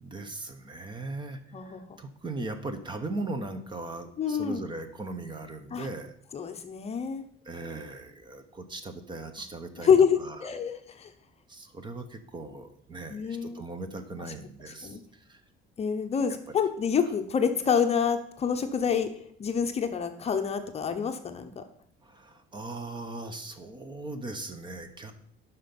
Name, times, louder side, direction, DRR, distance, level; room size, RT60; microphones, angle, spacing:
voice 1, 0.0-6.1 7.4-9.9 10.2-10.4 11.5-15.0 15.3-15.4 16.5-16.6 22.0-25.1, right 2 dB, 25° right, 9 dB, 0.8 m, -39 dB
voice 2, 4.2-4.7 5.7-5.9 6.3-7.2 9.8-11.1 13.1-13.6 14.8-15.0 15.8-19.1 19.4-21.6, left 7 dB, 30° left, 7 dB, 0.8 m, -27 dB
11.5 x 5.8 x 5.3 m, 0.65 s
cardioid pair, 170°, 20 cm